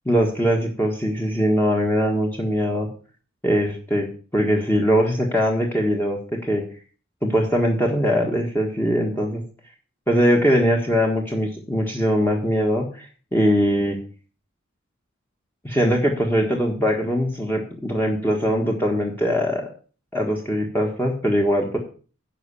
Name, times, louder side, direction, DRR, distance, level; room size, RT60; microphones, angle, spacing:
voice 1, 0.0-2.9 3.4-4.1 4.3-6.6 7.2-9.4 10.1-13.0 13.3-14.0 15.6-19.7 20.1-21.8, equal, 10° left, -1 dB, 1.6 m, -21 dB
10.5 x 5.7 x 7.0 m, 0.40 s
head